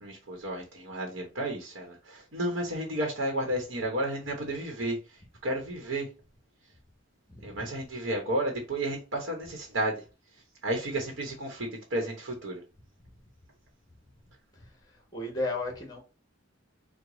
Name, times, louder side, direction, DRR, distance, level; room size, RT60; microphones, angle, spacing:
voice 1, 0.0-6.1 7.4-10.0 10.6-12.6, right 1 dB, 75° right, 1.1 m, -32 dB
voice 2, 15.1-16.0, left 2 dB, 20° left, 1.2 m, -33 dB
4.7 x 2.2 x 3.9 m
head